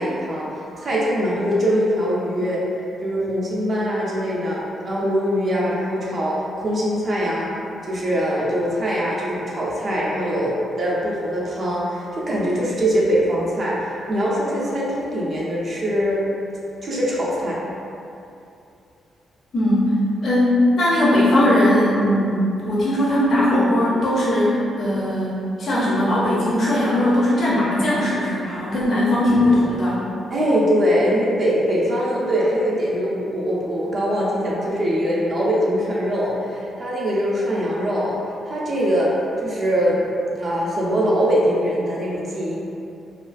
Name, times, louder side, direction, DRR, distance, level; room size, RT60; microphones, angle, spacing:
voice 1, 0.0-2.6 3.0-7.5 7.9-16.2 16.8-17.6 30.3-38.2 38.5-39.1 39.4-40.1 40.3-42.6, equal, 40° right, -6 dB, 0.4 m, -22 dB
voice 2, 19.5-19.9 20.2-30.0, left 1 dB, 50° left, -8 dB, 0.5 m, -19 dB
2.3 x 2.2 x 2.4 m, 2.7 s
cardioid pair, 140°, 0 cm